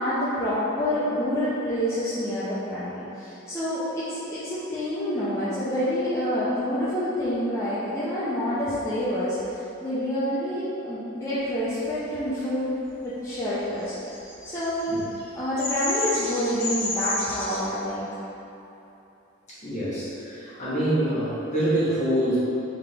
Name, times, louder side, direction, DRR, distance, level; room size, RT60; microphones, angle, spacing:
voice 1, 0.0-12.8 13.0-13.9 14.4-14.9 15.3-18.2, equal, 15° left, -12 dB, 0.6 m, -27 dB
Bird vocalization bird call bird song, 13.9-17.6, left 2 dB, 75° left, 1.3 m, -30 dB
voice 2, 19.6-22.4, right 1 dB, 35° left, -12 dB, 1.5 m, -25 dB
3.6 x 3.5 x 3.3 m, 3.0 s
head